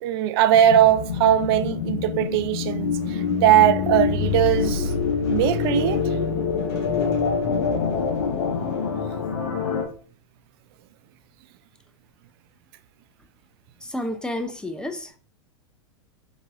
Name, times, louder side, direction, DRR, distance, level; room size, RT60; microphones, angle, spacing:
voice 1, 0.0-4.9 5.3-6.0, right 11 dB, 55° right, 0.4 m, -20 dB
sound 1, 0.5-9.8, left 6 dB, 75° left, 1.0 m, -26 dB
sound 2, 0.6-9.4, left 3 dB, 60° left, 1.9 m, -31 dB
voice 2, 13.9-15.2, left 1 dB, 5° left, 0.5 m, -30 dB
4.6 x 4.1 x 2.5 m
hypercardioid pair, 100°, 15 cm